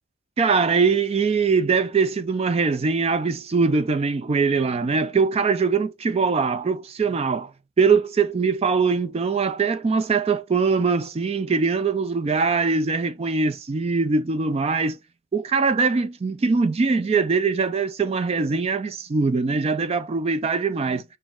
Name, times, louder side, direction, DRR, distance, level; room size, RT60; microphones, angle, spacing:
voice 1, 0.4-7.5 7.8-15.0 15.3-21.0, right 4 dB, 30° right, 0.3 m, -22 dB
7.1 x 2.8 x 2.4 m
head